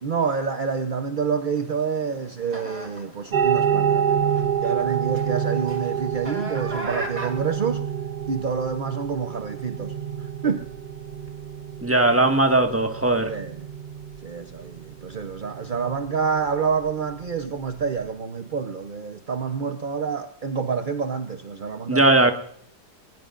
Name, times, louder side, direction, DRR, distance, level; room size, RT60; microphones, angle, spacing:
voice 1, 0.0-4.1 4.6-7.8 8.3-10.7 13.3-13.7 14.2-22.1, right 6 dB, 45° right, 0.6 m, -28 dB
sound 1, 1.5-7.7, right 1 dB, 65° right, 3.6 m, -39 dB
sound 2, 3.3-18.1, right 8 dB, 80° right, 0.4 m, -28 dB
voice 2, 11.8-13.3 21.9-22.3, right 2 dB, 10° right, 1.5 m, -18 dB
22.0 x 20.0 x 2.5 m
omnidirectional pair, 1.8 m